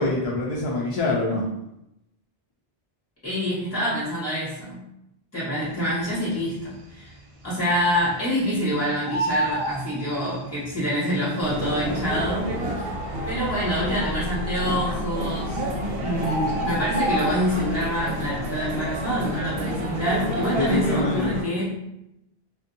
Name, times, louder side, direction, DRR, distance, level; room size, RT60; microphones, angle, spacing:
voice 1, 0.0-1.4 20.6-21.3, left 2 dB, 55° left, -3 dB, 0.4 m, -25 dB
voice 2, 3.2-4.8 5.3-7.1 7.4-12.9 13.2-15.6 16.0-21.7, equal, 15° left, -9 dB, 1.2 m, -26 dB
Bird, 6.2-6.7 7.1-7.2 7.4-8.6 8.9-10.7 11.6-11.7 12.3-12.4 12.6-12.7 13.4-13.8 14.8-14.9 15.2-15.3 15.6-17.8 18.2-18.5 18.8-20.2 20.5-20.8, right 1 dB, 50° right, 0.4 m, -29 dB
sound 1, 11.4-21.4, equal, 75° right, 0.8 m, -30 dB
2.6 x 2.1 x 2.6 m, 0.85 s
omnidirectional pair, 1.0 m